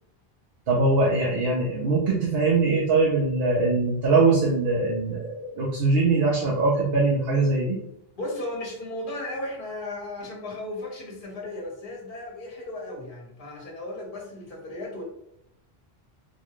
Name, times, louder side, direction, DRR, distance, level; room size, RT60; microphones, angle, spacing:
voice 1, 0.7-7.8, right 3 dB, 70° right, -3 dB, 0.9 m, -22 dB
voice 2, 8.1-15.0, left 1 dB, 55° left, -1 dB, 1.2 m, -35 dB
4.2 x 2.2 x 3.0 m, 0.79 s
omnidirectional pair, 1.1 m